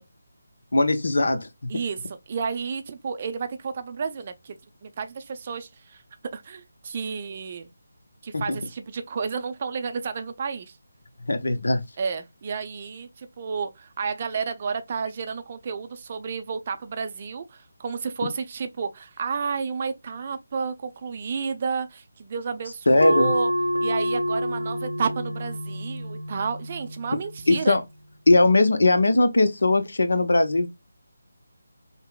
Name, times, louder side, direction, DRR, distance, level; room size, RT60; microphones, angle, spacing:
voice 1, 0.7-1.5 8.3-8.6 11.3-11.8 22.9-23.3 27.5-27.8 28.3-30.7, left 2 dB, 60° left, 0.7 m, -19 dB
voice 2, 1.7-4.5 4.8-6.0 6.3-7.7 8.2-10.8 12.0-23.5 23.8-27.8, right 5 dB, 30° right, 0.5 m, -31 dB
sound 1, 23.0-28.1, equal, 75° right, 0.7 m, -28 dB
5.5 x 2.1 x 2.3 m
figure-of-eight pair, 155°, 0 cm